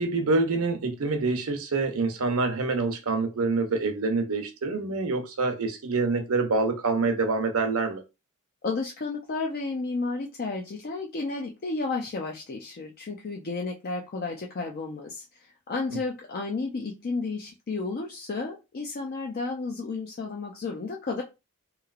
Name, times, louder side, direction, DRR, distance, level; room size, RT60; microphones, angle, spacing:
voice 1, 0.0-8.0 15.9-16.0, right 3 dB, 65° right, 0.7 m, -26 dB
voice 2, 8.6-15.3 15.7-21.2, left 3 dB, 45° left, 0.5 m, -32 dB
3.0 x 2.8 x 2.4 m
head